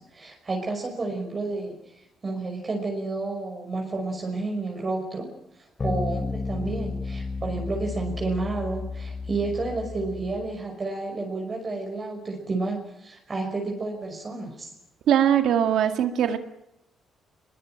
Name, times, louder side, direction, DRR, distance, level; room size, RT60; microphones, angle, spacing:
voice 1, 0.0-14.7, right 3 dB, 35° right, 1 dB, 5.7 m, -31 dB
sound 1, 5.8-10.6, left 4 dB, 35° left, 3.5 m, -32 dB
voice 2, 15.1-16.4, right 9 dB, 75° right, 8 dB, 2.0 m, -21 dB
22.0 x 21.0 x 9.2 m, 0.83 s
cardioid pair, 90°, 0 cm